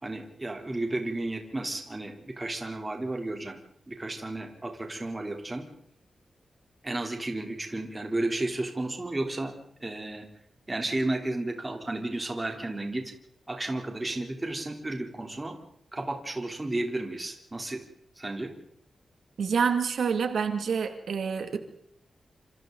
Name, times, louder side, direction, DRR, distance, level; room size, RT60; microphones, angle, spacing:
voice 1, 0.0-3.6 3.9-5.6 6.8-9.5 9.8-10.3 10.7-13.0 13.5-15.5 15.9-17.8 18.2-18.5, right 2 dB, 20° right, 3 dB, 3.4 m, -32 dB
voice 2, 19.4-21.6, right 6 dB, 85° right, 6 dB, 2.4 m, -27 dB
27.0 x 27.0 x 4.0 m, 0.68 s
wide cardioid pair, 160°, 0 cm